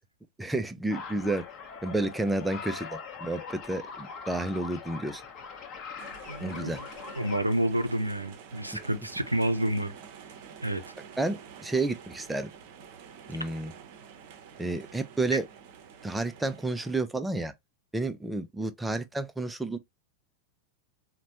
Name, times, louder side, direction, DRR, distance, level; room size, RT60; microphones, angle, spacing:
voice 1, 0.4-1.4 1.8-5.2 6.4-6.8 8.8-8.9 11.2-12.5 13.3-13.7 14.6-15.4 16.0-17.5 17.9-19.8, right 2 dB, 5° right, 0.4 m, -31 dB
sound 1, 0.9-7.5, left 5 dB, 35° left, 0.8 m, -42 dB
sound 2, 6.0-17.0, right 7 dB, 50° right, 0.6 m, -48 dB
voice 2, 6.3-6.9 7.2-9.9 10.6-10.9, right 1 dB, 85° right, 0.4 m, -29 dB
4.0 x 2.2 x 2.8 m
figure-of-eight pair, 90°, 0 cm